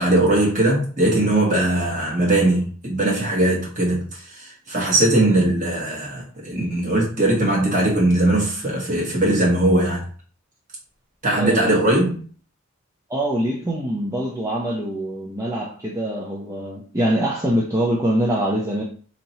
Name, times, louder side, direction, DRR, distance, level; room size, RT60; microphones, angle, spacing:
voice 1, 0.0-4.0 4.3-10.0 11.2-12.2, right 1 dB, 35° right, -3 dB, 1.2 m, -20 dB
voice 2, 11.4-11.7 13.1-18.8, right 1 dB, 15° right, -3 dB, 0.4 m, -24 dB
2.8 x 2.7 x 4.1 m, 0.43 s
head